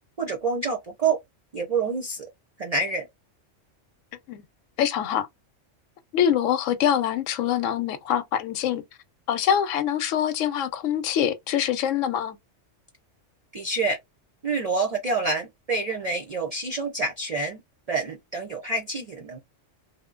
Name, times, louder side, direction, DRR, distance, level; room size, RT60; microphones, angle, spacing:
voice 1, 0.2-1.2 1.5-2.3 2.6-3.1 13.5-14.0 14.4-17.6 17.9-19.4, right 3 dB, 50° right, 0.5 m, -27 dB
voice 2, 4.8-5.3 6.1-8.8 9.3-12.4, left 9 dB, 85° left, 0.9 m, -24 dB
2.6 x 2.1 x 2.3 m
omnidirectional pair, 1.3 m